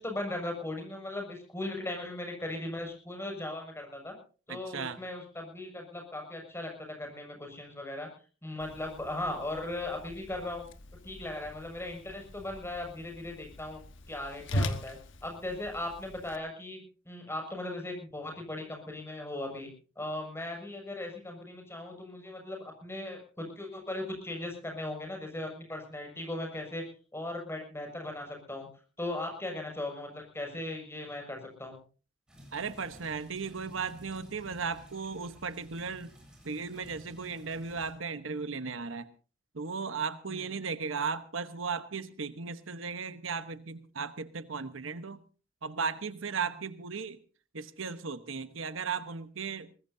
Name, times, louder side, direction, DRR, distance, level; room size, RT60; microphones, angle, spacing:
voice 1, 0.0-4.1 4.5-8.1 8.4-10.7 11.0-13.8 14.1-19.7 20.0-26.8 27.1-28.7 29.0-31.8 40.3-40.5, left 1 dB, 15° left, 2 dB, 6.4 m, -38 dB
voice 2, 4.5-5.0 32.5-36.1 36.4-39.1 39.5-45.2 45.6-47.2 47.5-49.7, right 5 dB, 80° right, 11 dB, 1.2 m, -36 dB
Whoosh swoosh swish, 8.6-16.4, left 1 dB, 65° left, 1.4 m, -40 dB
sound 1, 32.3-37.9, equal, 5° right, 7.8 m, -54 dB
22.0 x 20.0 x 2.8 m, 0.37 s
head